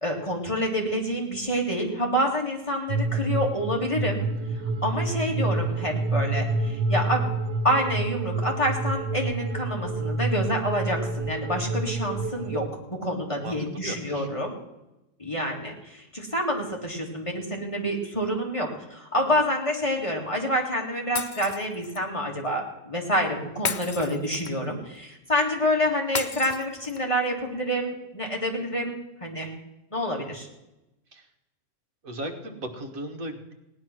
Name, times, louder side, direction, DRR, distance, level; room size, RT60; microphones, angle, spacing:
voice 1, 0.0-4.2 4.8-7.3 7.6-14.5 15.2-29.5 29.9-30.5, equal, 20° left, 0 dB, 2.3 m, -27 dB
sound 1, 2.9-12.7, right 3 dB, 90° right, 1.6 m, -28 dB
voice 2, 13.4-14.3 25.7-25.8 31.1-31.3 32.0-33.5, right 1 dB, 55° right, 3 dB, 2.1 m, -37 dB
Shatter, 21.2-22.0 23.6-24.7 26.2-27.2, left 6 dB, 70° left, 0.4 m, -33 dB
17.5 x 10.5 x 6.1 m, 0.95 s
omnidirectional pair, 1.8 m